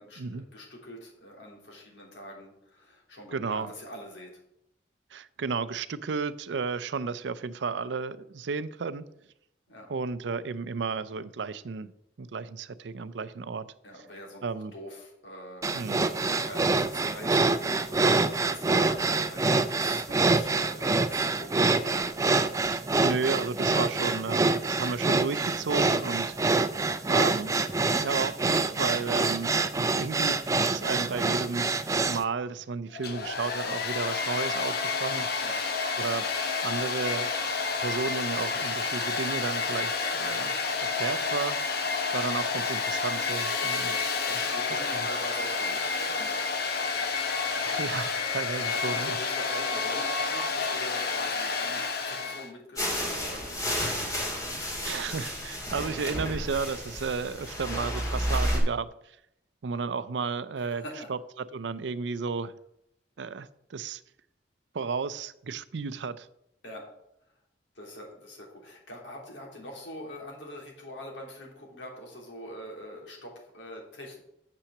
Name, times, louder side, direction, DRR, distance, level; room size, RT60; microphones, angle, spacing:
voice 1, 0.0-4.3 9.7-9.9 13.8-22.0 35.4-35.9 43.8-46.3 48.7-55.0 60.6-61.1 66.6-66.9 67.7-74.2, left 1 dB, 80° left, 0 dB, 2.8 m, -44 dB
voice 2, 3.3-3.7 5.1-9.1 9.9-11.9 12.2-13.7 14.4-14.7 15.7-16.1 22.6-26.4 27.1-27.5 28.0-31.7 32.0-35.3 36.0-36.3 36.6-37.3 37.8-40.5 40.8-41.6 42.1-43.9 44.3-44.4 47.6-49.2 54.7-58.9 59.6-60.8 61.1-61.2 61.5-62.5 63.2-64.0 64.7-66.3, right 5 dB, 75° right, 16 dB, 0.5 m, -33 dB
sound 1, 15.6-32.2, right 3 dB, 20° right, 0.4 m, -26 dB
Domestic sounds home sounds, 32.9-52.5, left 4 dB, 60° left, 1.1 m, -30 dB
sound 2, 52.8-58.6, equal, 20° left, 2.1 m, -31 dB
7.0 x 5.8 x 7.1 m, 0.79 s
head